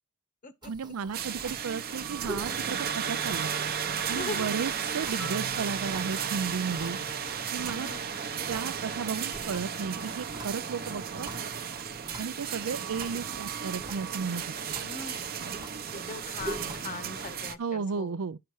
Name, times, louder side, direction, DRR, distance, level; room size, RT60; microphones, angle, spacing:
sound 1, 0.6-17.5, right 2 dB, 20° right, 1.0 m, -46 dB
voice 1, 0.7-3.5 4.1-7.0 7.5-7.9 8.5-11.3 12.2-14.8 17.6-18.4, right 5 dB, 85° right, 0.5 m, -34 dB
sound 2, 1.1-17.5, right 7 dB, 45° right, 0.7 m, -34 dB
voice 2, 4.1-4.5 7.7-8.0 14.8-15.3 15.9-18.2, left 4 dB, 40° left, 1.0 m, -40 dB
Marimba xylophone, 5.2-9.1, equal, 75° left, 1.5 m, -47 dB
11.5 x 5.8 x 4.7 m
head